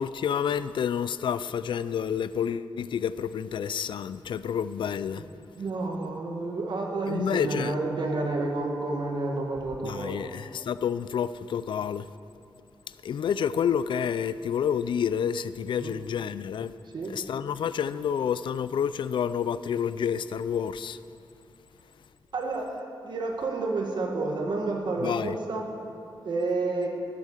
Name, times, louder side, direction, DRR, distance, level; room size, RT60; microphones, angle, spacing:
voice 1, 0.0-5.2 7.1-7.7 9.8-12.1 13.0-16.8 17.1-21.0 25.0-25.4, left 8 dB, 70° left, 15 dB, 0.3 m, -29 dB
voice 2, 5.6-10.3 15.8-16.0 16.9-17.1 22.3-25.7 26.2-26.9, right 3 dB, 60° right, 1 dB, 1.6 m, -30 dB
11.5 x 8.3 x 6.5 m, 2.9 s
wide cardioid pair, 155°, 9 cm